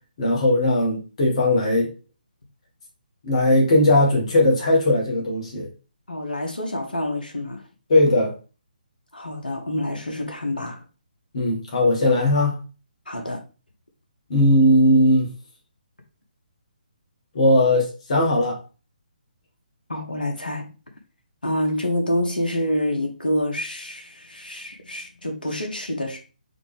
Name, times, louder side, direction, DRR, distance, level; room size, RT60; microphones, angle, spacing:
voice 1, 0.2-1.9 3.2-5.7 7.9-8.3 11.3-12.6 14.3-15.3 17.3-18.6, left 1 dB, 45° left, 1.5 m, -18 dB
voice 2, 6.1-7.6 9.1-10.8 13.1-13.4 19.9-20.6 21.4-26.2, left 1 dB, 80° left, 1.0 m, -27 dB
4.1 x 3.3 x 3.4 m
figure-of-eight pair, 140°, 5 cm